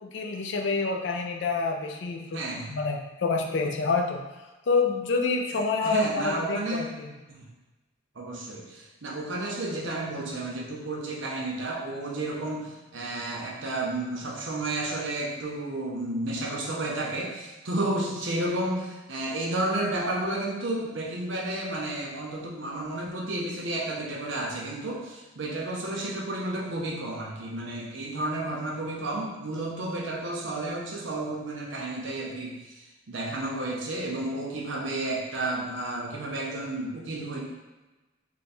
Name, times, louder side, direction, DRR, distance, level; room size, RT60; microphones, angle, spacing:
voice 1, 0.0-2.4 2.7-4.2 4.7-7.2, left 4 dB, 60° left, 3 dB, 0.4 m, -27 dB
voice 2, 2.3-2.8 5.8-6.9 7.3-7.5 8.2-37.4, right 2 dB, 65° right, -2 dB, 0.7 m, -32 dB
3.3 x 2.2 x 4.1 m, 1.1 s
head